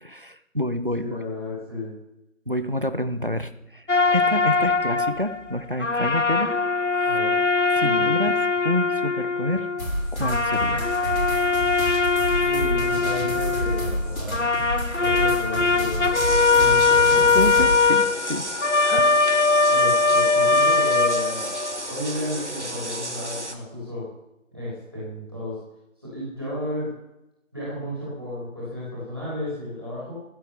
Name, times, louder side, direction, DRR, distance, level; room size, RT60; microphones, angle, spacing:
voice 1, 0.0-1.2 2.5-3.9 4.1-6.5 6.9-7.1 7.7-8.3 8.6-9.7 10.1-10.8 17.1-18.5 19.0-19.1, left 1 dB, 40° right, 11 dB, 0.7 m, -28 dB
voice 2, 1.0-1.9 7.0-7.4 7.8-8.1 12.4-14.5 14.9-17.3 19.6-21.5 21.8-24.1 24.5-25.7 26.0-27.0 27.5-30.1, left 1 dB, 20° right, -8 dB, 3.9 m, -33 dB
sound 1, 3.9-5.5 5.8-10.0 10.2-14.0 14.3-21.8, left 4 dB, 60° left, 0.8 m, -21 dB
sound 2, 9.8-17.8, equal, 85° left, 5.9 m, -29 dB
sound 3, 16.1-23.5, right 1 dB, 60° right, 1.7 m, -33 dB
15.0 x 8.2 x 7.1 m, 0.88 s
figure-of-eight pair, 175°, 40 cm